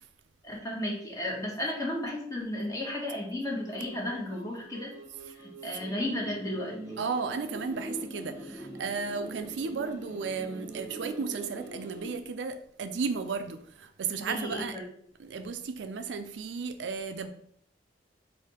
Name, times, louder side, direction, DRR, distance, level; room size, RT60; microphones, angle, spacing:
voice 1, 0.4-4.9 5.4-6.8 14.2-14.9, left 1 dB, 20° left, 1.0 m, -34 dB
sound 1, 3.4-12.2, right 1 dB, 15° right, 1.0 m, -43 dB
voice 2, 7.0-14.8 15.2-17.3, right 5 dB, 80° right, 0.4 m, -34 dB
3.3 x 2.7 x 4.3 m
head